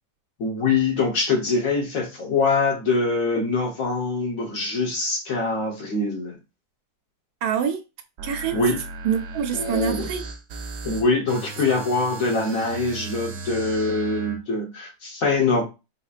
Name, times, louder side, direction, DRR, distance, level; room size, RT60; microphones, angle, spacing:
voice 1, 0.4-6.4 8.5-8.8 9.5-10.0 10.8-15.6, left 3 dB, 60° left, 1.4 m, -23 dB
voice 2, 7.4-7.8 8.2-8.8 9.0-10.2, right 8 dB, 85° right, 1.2 m, -25 dB
sound 1, 8.2-14.4, right 2 dB, 60° right, 0.9 m, -37 dB
4.2 x 2.9 x 2.4 m
omnidirectional pair, 1.7 m